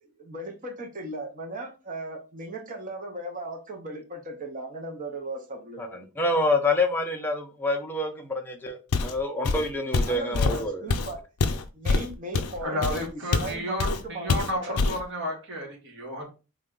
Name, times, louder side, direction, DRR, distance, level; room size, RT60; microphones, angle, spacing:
voice 1, 0.0-6.0 10.1-11.2 11.7-13.0 13.4-14.8, right 2 dB, 35° right, 0.7 m, -37 dB
voice 2, 5.8-10.8, left 2 dB, 10° left, 0.5 m, -27 dB
Walk footsteps, 8.9-9.2 9.4-13.5 13.8-14.0 14.3-15.0, left 3 dB, 80° left, 0.5 m, -25 dB
voice 3, 12.6-16.3, equal, 60° right, 1.3 m, -32 dB
3.6 x 2.2 x 3.6 m
head